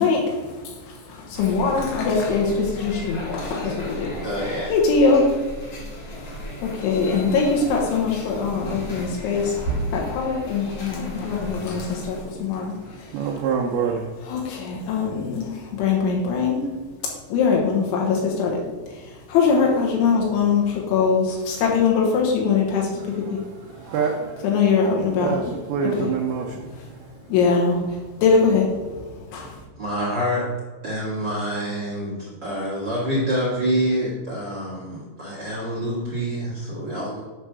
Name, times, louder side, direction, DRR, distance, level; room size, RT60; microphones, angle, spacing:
voice 1, 0.0-5.4 6.0-6.3 6.6-9.6 9.9-13.2 14.3-16.6 17.0-23.5 24.4-25.4 26.0-26.1 27.3-29.7, left 5 dB, 90° left, -1 dB, 3.5 m, -22 dB
sound 1, 1.3-12.2, right 1 dB, 55° left, 1.8 m, -34 dB
voice 2, 4.2-4.7 29.8-30.5 30.8-37.2, equal, 50° right, -7 dB, 1.3 m, -26 dB
voice 3, 12.6-14.1 23.0-24.6 25.2-27.3, right 6 dB, 90° right, -1 dB, 2.1 m, -28 dB
9.7 x 3.4 x 6.1 m, 1.4 s
omnidirectional pair, 5.4 m